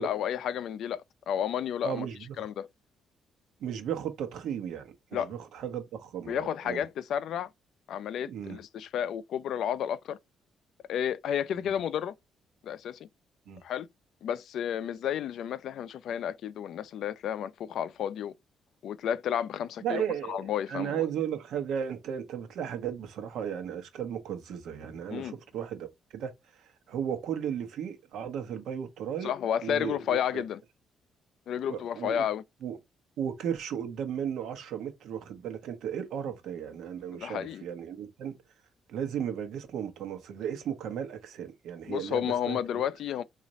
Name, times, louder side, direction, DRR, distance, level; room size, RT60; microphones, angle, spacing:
voice 1, 0.0-2.1 2.4-2.7 5.1-5.3 6.3-7.5 7.9-10.2 10.9-12.1 12.6-13.1 13.6-13.9 14.2-18.3 18.8-20.0 20.3-21.1 25.1-25.4 29.2-30.6 31.5-32.4 37.2-37.6 41.9-43.2, left 9 dB, 75° left, 0.3 m, -31 dB
voice 2, 1.8-2.5 3.6-6.8 8.3-8.6 13.5-13.6 19.8-25.9 26.1-29.3 29.6-30.4 31.7-32.3 32.6-32.8 33.2-38.4 38.9-42.6, right 8 dB, 80° right, 0.8 m, -35 dB
3.0 x 2.4 x 3.9 m
cardioid pair, 90°, 0 cm